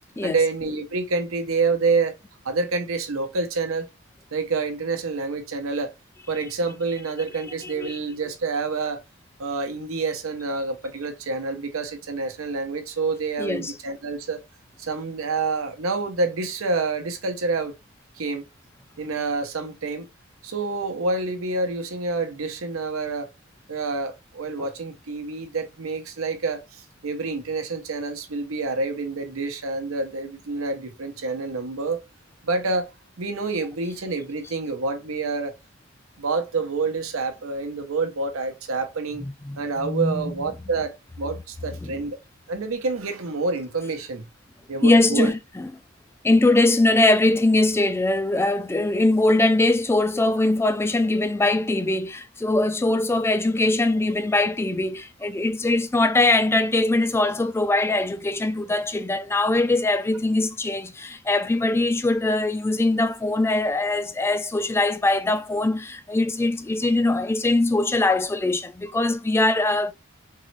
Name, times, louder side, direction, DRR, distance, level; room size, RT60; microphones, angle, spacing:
voice 1, 0.2-2.1 2.4-3.9 4.3-5.9 6.3-9.0 9.4-14.4 14.8-17.8 18.2-18.4 19.0-20.1 20.4-23.3 23.7-32.0 32.4-32.9 33.2-35.5 36.2-39.2 39.6-42.2 42.5-44.2 44.7-45.3, right 3 dB, 90° right, 0.8 m, -27 dB
voice 2, 7.6-8.0 13.4-13.7 39.2-40.3 41.8-41.9 44.8-45.7 46.2-69.9, left 2 dB, 10° left, 0.3 m, -22 dB
3.8 x 3.0 x 3.1 m
head